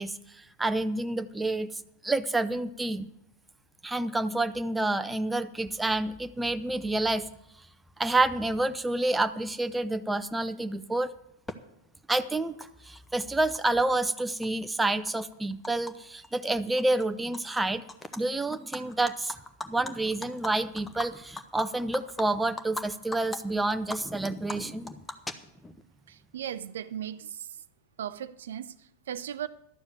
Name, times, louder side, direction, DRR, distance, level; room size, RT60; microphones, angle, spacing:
voice 1, 0.0-3.1 3.8-7.3 8.0-11.1 12.1-17.8 18.2-19.3 19.7-24.9, right 2 dB, 10° right, 0.5 m, -29 dB
Animal, 11.5-11.6 12.6-12.7 13.0-13.8 14.2-15.9 16.2-16.5 16.8-17.6 17.9-18.2 18.5-22.8 23.1-23.4 23.7-25.8, left 2 dB, 10° left, 0.8 m, -39 dB
voice 2, 26.1-27.6 28.0-29.5, right 10 dB, 60° right, 0.4 m, -37 dB
12.0 x 7.1 x 7.8 m
figure-of-eight pair, 90°, 0 cm